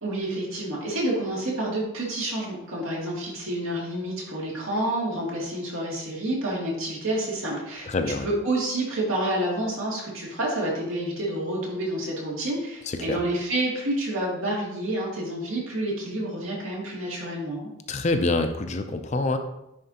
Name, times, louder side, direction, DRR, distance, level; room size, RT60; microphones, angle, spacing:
voice 1, 0.0-17.7, right 1 dB, 80° right, -4 dB, 2.2 m, -29 dB
voice 2, 7.9-8.3 12.9-13.2 17.9-19.4, left 2 dB, 35° left, 7 dB, 0.5 m, -26 dB
9.9 x 4.4 x 2.8 m, 0.87 s
head